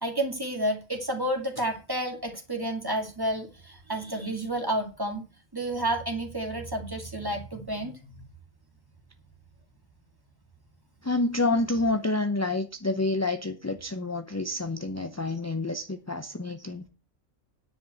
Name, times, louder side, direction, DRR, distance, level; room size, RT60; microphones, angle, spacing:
voice 1, 0.0-5.2 5.5-8.2, right 1 dB, 15° right, 4 dB, 2.2 m, -30 dB
voice 2, 11.0-16.9, left 2 dB, 15° left, 8 dB, 0.6 m, -28 dB
10.0 x 5.3 x 7.6 m, 0.33 s
omnidirectional pair, 1.4 m